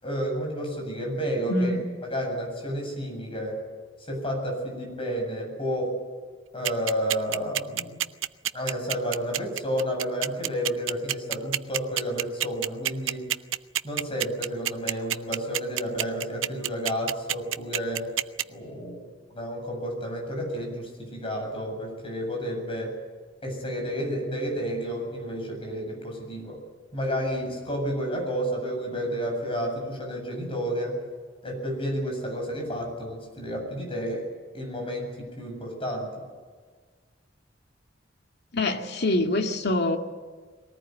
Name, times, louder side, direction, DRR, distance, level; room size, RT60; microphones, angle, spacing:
voice 1, 0.0-3.6 4.1-6.0 6.5-8.0 8.5-13.3 13.8-18.1 18.5-19.0 19.3-22.9 23.4-26.6 26.9-31.0 31.4-34.2 34.5-36.1, equal, 30° left, 1 dB, 7.8 m, -31 dB
voice 2, 1.5-1.8 38.5-40.0, left 1 dB, 60° left, 4 dB, 2.2 m, -25 dB
sound 1, 6.6-18.4, right 12 dB, 80° right, 0.7 m, -27 dB
22.5 x 18.5 x 9.5 m, 1.5 s
head